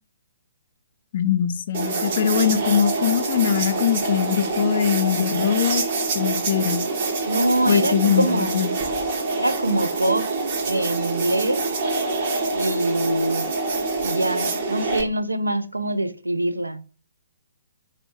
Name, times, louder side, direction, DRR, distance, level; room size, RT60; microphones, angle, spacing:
voice 1, 1.1-5.8 6.1-6.8 7.7-8.7, left 9 dB, 45° left, 0.3 m, -22 dB
sound 1, 1.7-15.0, right 3 dB, 40° right, 0.6 m, -26 dB
voice 2, 7.3-8.7 9.4-10.3 10.7-11.7 12.5-13.5 14.0-16.8, right 1 dB, 80° right, 0.3 m, -24 dB
3.3 x 2.1 x 2.9 m
figure-of-eight pair, 130°, 0 cm